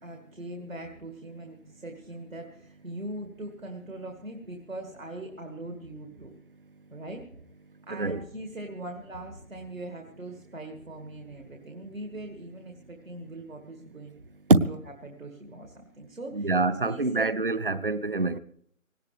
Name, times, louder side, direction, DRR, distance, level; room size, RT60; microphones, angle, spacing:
voice 1, 0.0-6.3 6.9-7.3 7.8-14.2 14.7-16.6 16.8-17.3, right 1 dB, 75° right, 2.3 m, -41 dB
voice 2, 16.3-18.4, right 3 dB, 45° right, 0.6 m, -24 dB
19.0 x 17.5 x 3.5 m
figure-of-eight pair, 160°, 40 cm